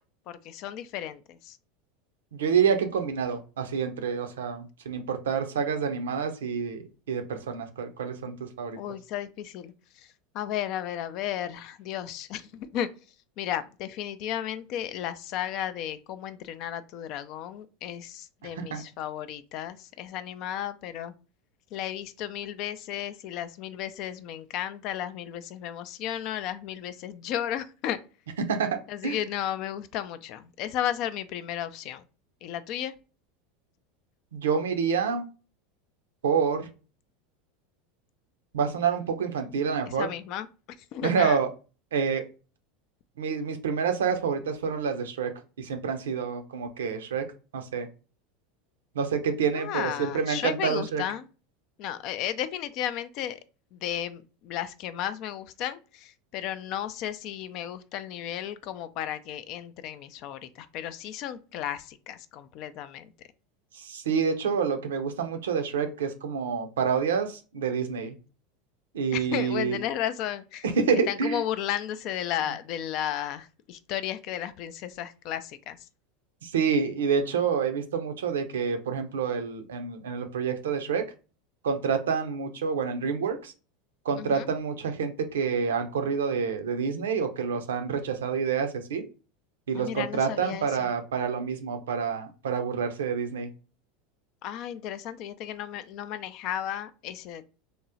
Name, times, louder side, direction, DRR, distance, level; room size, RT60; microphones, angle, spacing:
voice 1, 0.3-1.6 8.8-10.1 10.3-12.9 13.4-21.1 21.7-28.0 28.9-32.1 32.4-32.9 40.0-40.5 40.9-41.4 49.6-51.3 51.8-53.4 53.7-63.1 69.1-70.7 71.1-75.8 84.2-84.5 89.7-90.9 94.4-97.4, left 11 dB, 55° left, 0.3 m, -34 dB
voice 2, 2.3-8.8 18.4-18.8 28.5-29.2 34.3-35.3 36.2-36.7 38.5-40.1 41.0-41.5 41.9-42.2 43.2-45.3 45.6-47.2 47.5-47.9 48.9-51.0 63.7-68.2 68.9-69.8 70.6-71.4 76.4-81.0 81.6-83.5 84.0-89.1 89.7-93.5, right 6 dB, 80° right, 0.5 m, -28 dB
3.5 x 2.0 x 2.7 m
hypercardioid pair, 85°, 0 cm